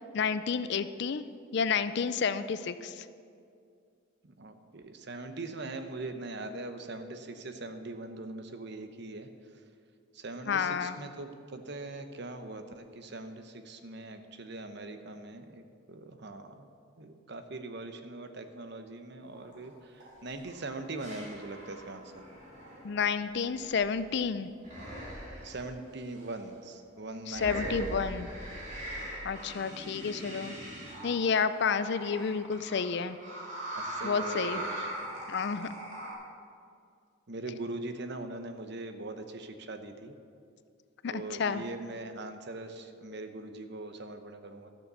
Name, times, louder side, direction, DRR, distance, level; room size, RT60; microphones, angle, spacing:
voice 1, 0.1-1.2 1.5-3.1 10.5-11.0 22.8-24.5 27.3-28.3 29.2-30.6 31.0-33.2 34.0-34.6 35.3-35.7 41.0-41.6, left 6 dB, 55° left, 13 dB, 0.4 m, -30 dB
voice 2, 4.2-9.3 10.1-15.6 15.9-16.7 17.0-22.2 25.4-28.1 33.7-34.9 37.3-40.1 41.1-44.7, right 2 dB, 55° right, 8 dB, 0.9 m, -41 dB
sound 1, 19.3-19.6 20.0-24.2 24.6-25.7 26.2-26.3 27.3-36.1, right 1 dB, 35° right, 3.0 m, -41 dB
13.0 x 6.8 x 6.8 m, 2.3 s
head